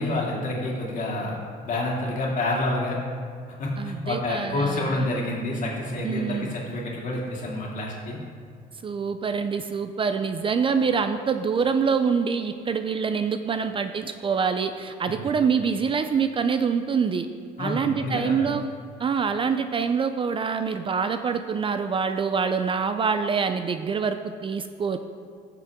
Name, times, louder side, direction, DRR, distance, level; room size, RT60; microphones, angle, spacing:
voice 1, 0.0-1.4 1.6-3.0 3.5-8.2 15.1-15.2 17.6-18.4, left 2 dB, 50° left, -3 dB, 2.5 m, -28 dB
voice 2, 3.8-5.1 6.0-6.5 8.8-17.3 17.6-18.6 19.0-25.0, right 6 dB, 30° right, 9 dB, 0.4 m, -25 dB
15.0 x 6.8 x 3.6 m, 2.2 s
cardioid pair, 110°, 17 cm